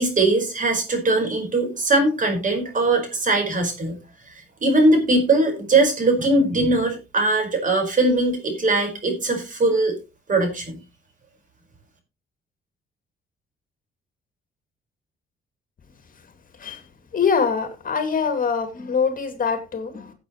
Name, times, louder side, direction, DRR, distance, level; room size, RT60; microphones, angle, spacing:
voice 1, 0.0-3.9 4.3-4.4 4.6-9.9 10.3-10.8, right 2 dB, 40° right, 5.0 m, -20 dB
voice 2, 17.1-20.1, left 6 dB, 45° left, 2.4 m, -23 dB
16.5 x 8.2 x 3.1 m
cardioid pair, 90°, 20 cm